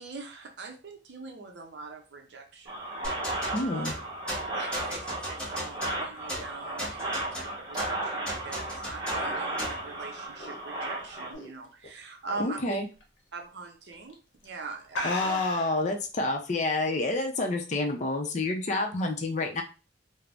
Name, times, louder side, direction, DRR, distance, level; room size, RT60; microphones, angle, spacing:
voice 1, 0.0-2.8 3.5-3.9 4.5-12.8 13.3-14.2 14.4-15.4, right 3 dB, 65° right, 3 dB, 0.5 m, -42 dB
sound 1, 2.7-11.3, right 2 dB, 25° right, 0.9 m, -35 dB
sound 2, 3.0-9.9, equal, 5° left, 0.8 m, -37 dB
voice 2, 3.5-3.9 12.4-12.9 15.0-19.6, left 2 dB, 40° left, 3 dB, 0.5 m, -28 dB
sound 3, 8.8-11.9 12.3-12.6 13.0-13.1 13.9-14.1 14.4-14.5 14.9-15.9, left 2 dB, 85° left, 0.7 m, -37 dB
2.5 x 2.0 x 3.3 m, 0.32 s
head